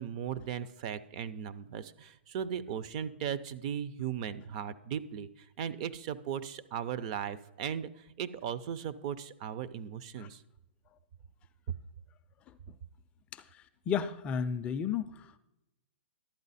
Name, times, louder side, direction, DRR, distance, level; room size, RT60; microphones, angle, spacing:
voice 1, 0.0-10.4, right 8 dB, 40° right, 14 dB, 0.5 m, -37 dB
voice 2, 13.3-15.4, left 7 dB, 20° left, 11 dB, 0.4 m, -34 dB
11.5 x 8.5 x 4.1 m, 0.90 s
hypercardioid pair, 150°, 6 cm